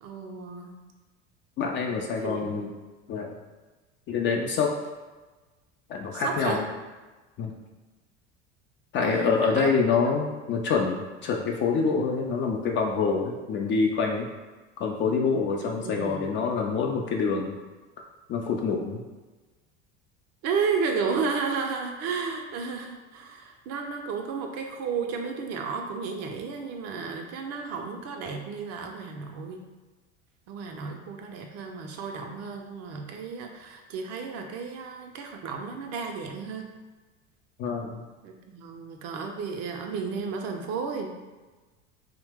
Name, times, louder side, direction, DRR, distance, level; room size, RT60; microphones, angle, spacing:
voice 1, 0.0-0.7 1.8-2.5 6.1-6.6 9.0-9.7 10.1-10.2 15.6-16.3 20.4-29.6 30.5-36.7 38.2-41.1, right 5 dB, 45° right, 3 dB, 0.5 m, -33 dB
voice 2, 1.6-2.7 3.1-3.4 4.1-4.7 5.9-6.7 7.4-7.5 8.9-14.3 14.8-17.5 18.3-19.0 37.6-38.0, left 5 dB, 35° left, 1 dB, 0.4 m, -26 dB
2.7 x 2.1 x 3.4 m, 1.2 s
hypercardioid pair, 80°, 36 cm